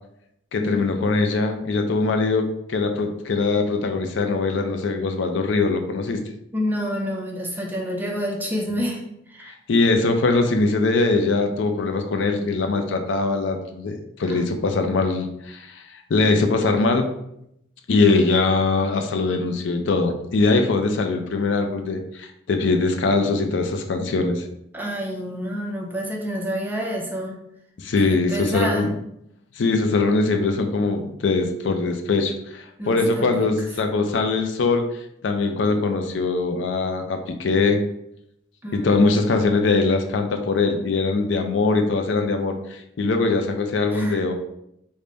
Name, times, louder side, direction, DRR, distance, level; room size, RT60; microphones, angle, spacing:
voice 1, 0.5-6.2 9.7-17.1 17.9-24.4 27.8-28.9 29.6-34.8 35.2-37.8 38.7-44.3, left 3 dB, 85° left, 5 dB, 0.4 m, -22 dB
voice 2, 6.5-9.5 14.3-14.4 24.7-27.4 28.1-29.0 32.8-33.4 38.6-39.2 43.9-44.3, equal, 10° right, -1 dB, 0.5 m, -28 dB
3.4 x 2.1 x 3.8 m, 0.79 s
head